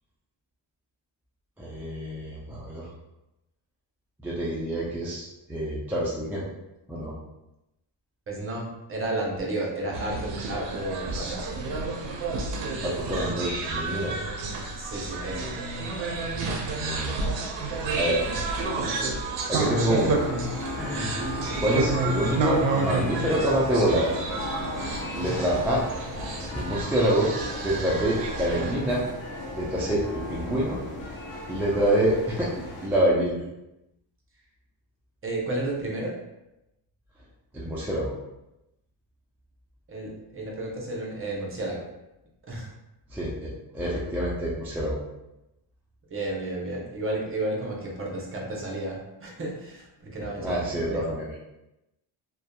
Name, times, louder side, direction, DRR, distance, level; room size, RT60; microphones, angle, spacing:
voice 1, 1.6-2.9 4.2-6.5 6.9-7.1 12.8-14.1 16.7-17.1 17.9-18.2 19.5-20.3 20.8-21.1 21.6-24.1 25.1-25.8 26.5-27.3 27.6-29.0 29.5-30.8 31.5-33.4 37.5-38.1 43.1-45.0 50.4-51.3, right 1 dB, 5° right, -6 dB, 0.3 m, -26 dB
voice 2, 8.3-11.5 14.8-15.5 35.2-36.2 39.9-41.9 42.5-42.7 46.1-51.1, right 2 dB, 30° right, -2 dB, 0.7 m, -32 dB
sound 1, 9.9-28.7, right 3 dB, 65° right, 0.6 m, -30 dB
sound 2, 19.6-32.9, left 1 dB, 70° left, 0.8 m, -36 dB
2.6 x 2.2 x 2.2 m, 0.92 s
cardioid pair, 90°, 47 cm